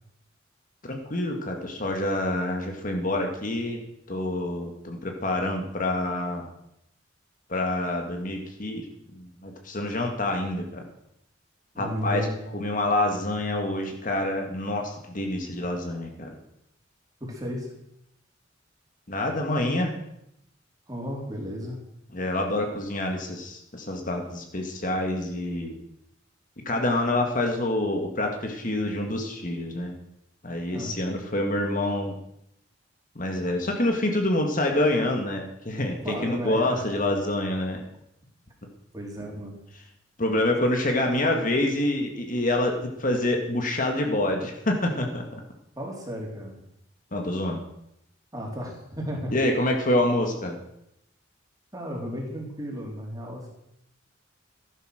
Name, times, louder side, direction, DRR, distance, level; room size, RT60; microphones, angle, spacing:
voice 1, 0.8-3.8 4.1-6.5 7.5-8.9 9.1-10.8 11.8-12.3 12.5-16.3 19.1-19.9 22.1-25.7 26.7-30.0 30.4-32.2 33.2-37.8 40.2-45.4 47.1-47.6 49.3-50.6, left 1 dB, 45° left, 3 dB, 1.9 m, -27 dB
voice 2, 11.7-12.5 17.2-17.7 20.9-21.8 30.7-31.0 36.0-36.9 38.9-39.6 45.8-46.6 48.3-49.3 51.7-53.5, equal, 20° right, -1 dB, 3.9 m, -34 dB
15.0 x 11.0 x 6.5 m, 0.79 s
head